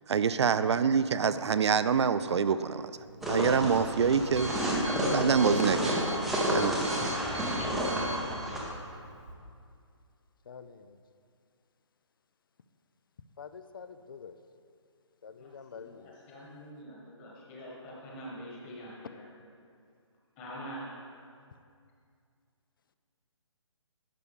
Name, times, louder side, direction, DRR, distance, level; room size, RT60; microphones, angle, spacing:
voice 1, 0.1-2.9 3.3-4.6 5.1-6.0 6.5-7.0, right 6 dB, 65° right, 13 dB, 0.4 m, -26 dB
Alarm, 2.9-9.3, right 1 dB, 80° right, 1.4 m, -41 dB
sound 1, 3.2-8.6, equal, ahead, 0.6 m, -30 dB
voice 2, 13.4-14.3 15.2-15.9, left 6 dB, 45° left, 11 dB, 0.4 m, -46 dB
voice 3, 15.4-19.2 20.4-20.9, equal, 20° left, -4 dB, 1.6 m, -45 dB
11.0 x 6.7 x 3.6 m, 2.3 s
hypercardioid pair, 160°, 16 cm